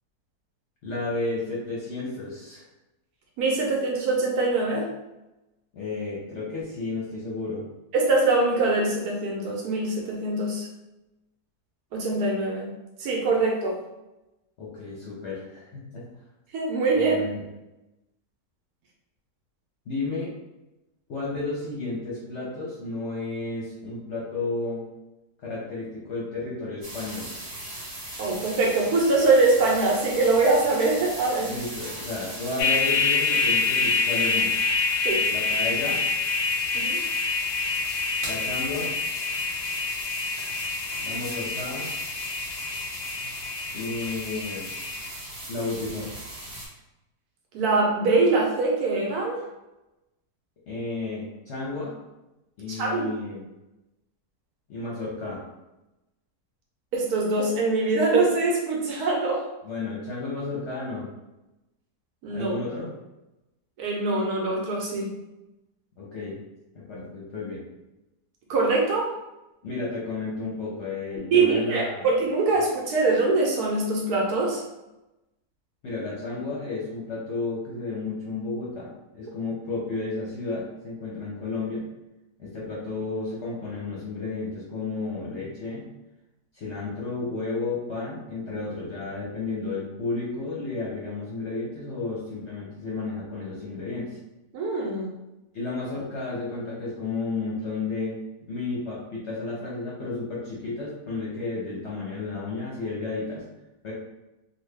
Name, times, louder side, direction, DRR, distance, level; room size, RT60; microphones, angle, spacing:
voice 1, 0.8-2.6 5.7-7.6 14.6-16.0 16.9-17.4 19.9-20.3 21.1-24.9 25.4-27.3 31.4-34.5 35.3-36.1 38.2-38.9 41.0-41.9 43.7-44.7 45.5-46.1 50.7-52.0 52.6-53.4 54.7-55.4 59.6-61.1 62.3-62.9 66.0-66.4 66.7-67.6 69.6-72.1 75.8-81.8 82.4-85.9 86.5-94.2 95.5-98.2 98.5-103.5 103.8-103.9, left 3 dB, 55° left, -6 dB, 0.8 m, -32 dB
voice 2, 3.4-4.9 7.9-10.7 11.9-12.7 13.0-13.8 16.5-17.2 28.2-31.5 35.0-35.3 36.7-37.0 47.5-49.4 52.7-53.1 56.9-59.4 62.2-62.5 63.8-65.1 68.5-69.1 71.3-74.6 94.5-95.1, right 3 dB, 70° right, -1 dB, 1.1 m, -23 dB
sound 1, 26.8-46.7, right 1 dB, 40° right, 1.1 m, -38 dB
sound 2, 32.6-45.1, left 4 dB, 90° left, 1.2 m, -27 dB
3.0 x 2.2 x 3.3 m, 0.96 s
omnidirectional pair, 1.8 m